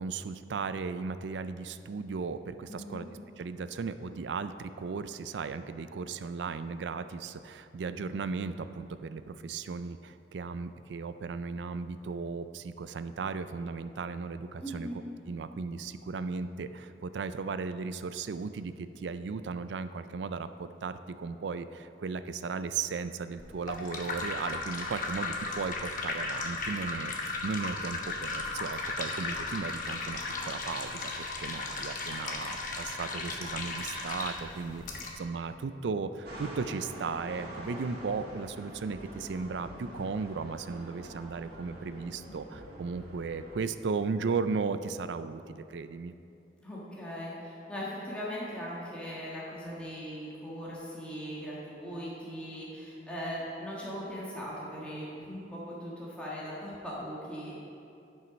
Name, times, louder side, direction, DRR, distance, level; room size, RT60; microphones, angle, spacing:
voice 1, 0.0-3.0 3.4-14.9 15.3-46.1, right 4 dB, 85° right, 12 dB, 0.4 m, -36 dB
voice 2, 2.7-3.1 14.6-15.0 31.5-31.7 46.6-57.5, equal, 5° left, -7 dB, 1.5 m, -39 dB
sound 1, 23.4-35.1, left 3 dB, 50° left, 1.0 m, -36 dB
sound 2, 36.2-43.6, equal, 60° right, 2.0 m, -45 dB
11.0 x 5.6 x 5.1 m, 2.7 s
head